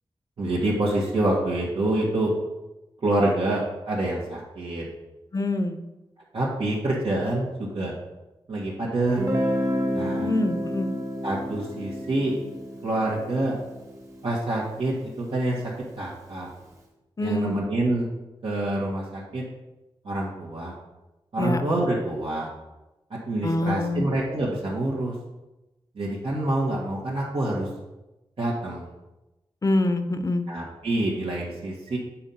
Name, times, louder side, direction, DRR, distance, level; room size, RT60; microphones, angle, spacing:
voice 1, 0.4-2.3 3.0-4.9 6.3-7.9 8.5-9.2 9.9-10.3 11.2-12.4 12.8-13.6 14.2-15.6 16.0-16.5 17.2-18.1 18.4-19.4 20.0-20.7 21.3-22.5 23.1-25.1 26.0-27.7 28.4-28.9 30.5-32.0, right 1 dB, 75° right, -5 dB, 1.7 m, -26 dB
voice 2, 5.3-5.8 10.2-10.9 17.2-17.6 21.4-21.6 23.4-24.0 29.6-30.5, left 2 dB, 35° left, 8 dB, 0.7 m, -25 dB
Guitar, 9.1-14.9, equal, 35° right, 1.4 m, -30 dB
8.6 x 4.5 x 5.6 m, 1.0 s
wide cardioid pair, 130°, 10 cm